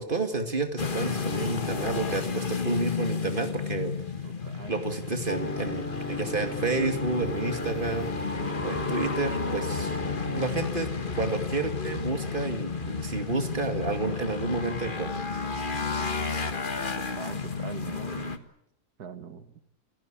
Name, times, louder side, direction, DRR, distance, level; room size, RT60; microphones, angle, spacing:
voice 1, 0.0-3.9 4.7-8.1 8.6-10.0 10.3-10.9 11.2-15.1, right 3 dB, 30° right, 6 dB, 2.5 m, -30 dB
sound 1, 0.8-18.4, left 5 dB, 30° left, 1.5 m, -32 dB
voice 2, 4.2-4.8 17.0-18.4 19.0-19.6, right 6 dB, 65° right, 11 dB, 2.0 m, -42 dB
sound 2, 5.3-10.4, left 2 dB, 15° left, 0.4 m, -34 dB
28.0 x 16.5 x 8.8 m, 0.76 s
omnidirectional pair, 1.8 m